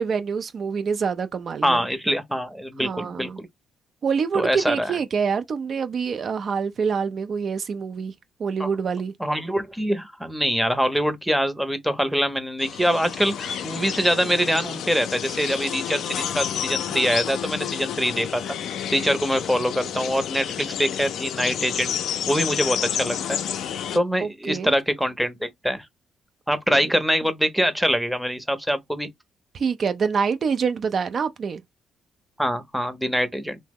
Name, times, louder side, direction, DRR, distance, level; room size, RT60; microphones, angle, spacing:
voice 1, 0.0-1.8 2.8-3.4 4.0-8.1 8.4-9.1 24.2-24.7 26.7-26.8 29.5-31.6, right 6 dB, 50° right, 0.3 m, -26 dB
voice 2, 1.6-3.5 4.3-5.0 8.6-8.7 9.2-18.6 18.9-21.9 22.3-23.4 23.9-25.9 26.5-29.1 32.4-33.6, equal, ahead, 0.6 m, -24 dB
sound 1, 12.6-24.0, left 9 dB, 75° left, 0.4 m, -30 dB
2.8 x 2.0 x 3.5 m
cardioid pair, 90°, 0 cm